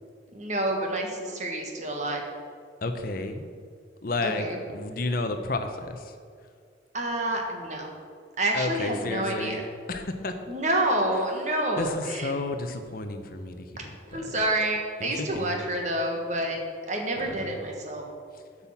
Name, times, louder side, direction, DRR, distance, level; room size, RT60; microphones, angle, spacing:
voice 1, 0.3-2.2 4.2-4.6 6.9-7.9 8.4-9.6 10.5-12.3 13.8-16.6 16.9-18.0, right 1 dB, 40° right, 1 dB, 1.4 m, -28 dB
voice 2, 2.8-3.5 4.0-4.5 4.7-6.1 8.5-9.6 9.9-10.3 11.8-14.3 15.0-15.6 17.2-17.6, left 2 dB, 50° left, 7 dB, 0.7 m, -32 dB
8.4 x 5.6 x 7.3 m, 2.2 s
head